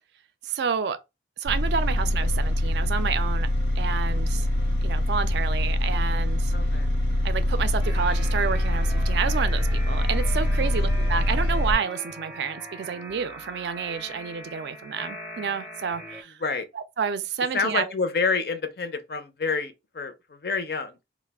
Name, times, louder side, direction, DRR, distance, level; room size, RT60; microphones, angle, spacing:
voice 1, 0.4-1.0 1.4-3.5 3.8-4.5 4.8-6.5 7.2-16.4 16.7-17.9, right 6 dB, 70° right, 0.3 m, -29 dB
sound 1, 1.5-11.8, left 1 dB, 90° left, 0.9 m, -24 dB
voice 2, 6.5-6.9 10.6-10.9 16.4-16.6 17.5-21.0, left 4 dB, 55° left, 0.4 m, -28 dB
sound 2, 7.8-16.2, equal, 10° right, 0.5 m, -41 dB
2.3 x 2.0 x 3.3 m
head